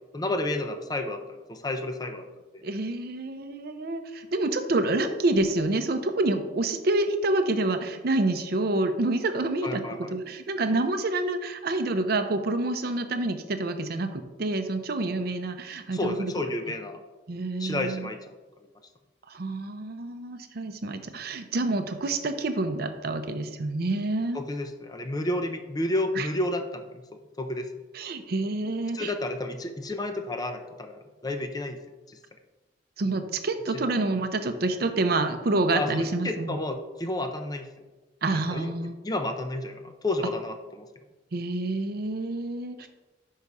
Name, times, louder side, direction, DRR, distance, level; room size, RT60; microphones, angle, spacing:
voice 1, 0.1-2.3 2.5-2.6 9.6-10.2 15.9-17.0 17.6-18.3 18.6-18.7 24.3-27.0 27.4-27.7 28.9-31.8 32.1-32.2 33.7-33.8 35.7-37.7 38.3-38.7 39.0-40.9, left 1 dB, 20° left, 5 dB, 0.5 m, -31 dB
voice 2, 2.6-16.3 17.3-18.1 19.3-24.4 26.2-26.3 27.9-29.1 33.0-36.6 38.2-39.0 41.3-42.9, right 2 dB, 55° right, 8 dB, 0.6 m, -28 dB
5.6 x 5.3 x 4.7 m, 1.2 s
head